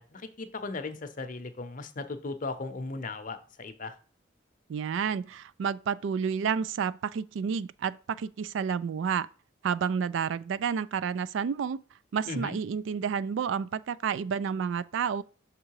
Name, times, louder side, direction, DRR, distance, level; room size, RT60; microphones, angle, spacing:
voice 1, 0.0-4.0 12.3-12.5, left 3 dB, 40° left, 0.7 m, -37 dB
voice 2, 4.7-9.3 9.6-11.8 12.1-15.2, right 7 dB, 65° right, 0.3 m, -30 dB
6.4 x 3.7 x 4.7 m
head